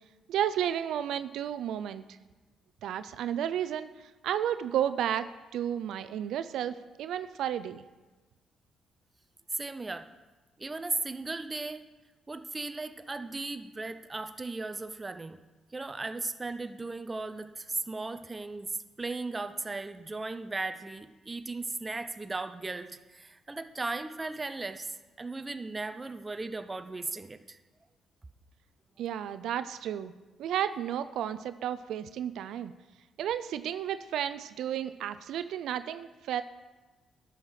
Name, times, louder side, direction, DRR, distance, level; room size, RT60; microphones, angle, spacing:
voice 1, 0.3-2.0 2.8-3.9 4.2-7.8 29.0-30.1 30.4-32.7 33.2-36.4, right 10 dB, 80° right, 13 dB, 0.4 m, -32 dB
voice 2, 9.5-10.1 10.6-11.9 12.3-15.4 15.7-18.7 19.0-27.6, right 3 dB, 20° right, 9 dB, 0.6 m, -36 dB
11.5 x 6.4 x 5.7 m, 1.2 s
cardioid pair, 90°, 0 cm